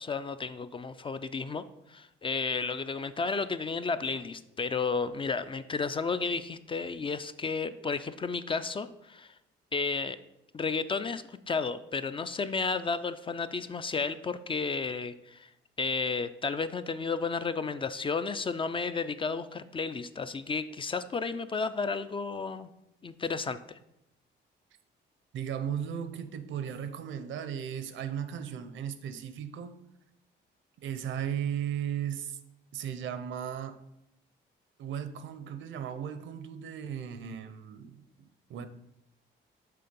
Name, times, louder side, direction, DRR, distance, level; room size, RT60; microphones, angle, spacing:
voice 1, 0.0-1.6 1.9-9.3 9.7-10.2 10.5-15.5 15.8-22.7 23.0-23.8, left 4 dB, 25° left, 12 dB, 0.4 m, -32 dB
voice 2, 25.3-29.8 30.8-32.4 32.7-33.8 34.8-38.7, right 9 dB, 75° right, 10 dB, 0.6 m, -36 dB
6.7 x 3.8 x 5.2 m, 0.85 s
cardioid pair, 90°, 20 cm